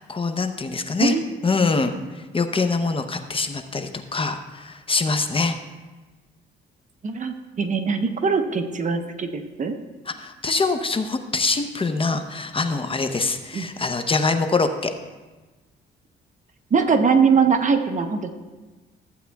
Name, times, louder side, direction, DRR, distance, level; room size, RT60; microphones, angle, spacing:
voice 1, 0.0-1.1 1.4-5.6 10.1-14.9, left 4 dB, 25° left, 7 dB, 0.7 m, -24 dB
voice 2, 7.0-9.8 13.5-13.7 16.7-18.3, right 5 dB, 40° right, 6 dB, 0.8 m, -21 dB
14.5 x 8.1 x 2.3 m, 1.2 s
cardioid pair, 90°, 20 cm